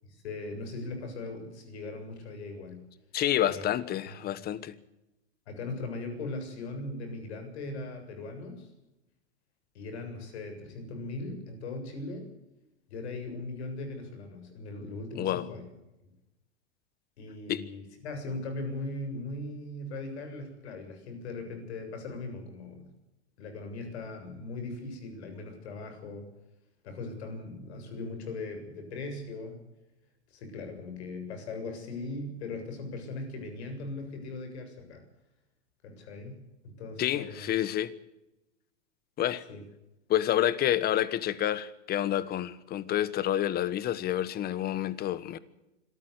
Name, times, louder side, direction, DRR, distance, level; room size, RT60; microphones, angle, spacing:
voice 1, 0.0-2.8 3.5-3.7 4.1-4.3 5.5-8.7 9.7-12.3 12.9-15.6 17.2-22.9 23.4-26.3 26.8-29.6 30.3-35.0 35.8-37.5 39.5-39.6, left 2 dB, 65° left, 7.5 m, -39 dB
voice 2, 3.1-4.8 15.2-15.5 17.5-17.6 37.0-37.9 39.2-39.4 40.1-45.4, left 12 dB, 25° left, 1.3 m, -28 dB
25.5 x 14.0 x 8.2 m
hypercardioid pair, 120°, 36 cm